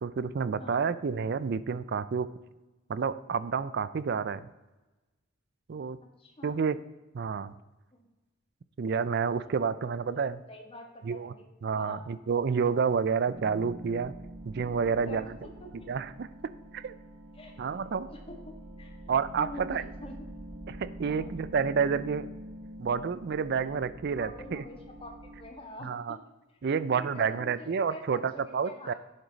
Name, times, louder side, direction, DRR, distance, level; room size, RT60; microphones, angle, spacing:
voice 1, 0.0-2.3 2.9-4.5 5.7-6.0 6.4-6.8 7.1-7.5 8.8-10.4 11.0-11.3 11.6-14.1 14.4-15.4 15.9-16.3 16.7-16.9 17.6-18.1 19.1-19.8 20.7-22.3 22.8-24.6 25.8-26.2 26.6-28.9, right 6 dB, 50° right, 16 dB, 0.4 m, -29 dB
voice 2, 6.2-6.6 7.9-8.0 10.1-11.5 11.7-12.0 15.0-15.9 17.3-18.4 18.8-20.2 21.0-21.3 24.1-26.2 26.6-28.9, left 1 dB, 25° left, 2 dB, 1.5 m, -46 dB
sound 1, 13.3-25.5, right 1 dB, 90° right, 1.0 m, -46 dB
11.0 x 7.9 x 4.0 m, 1.1 s
head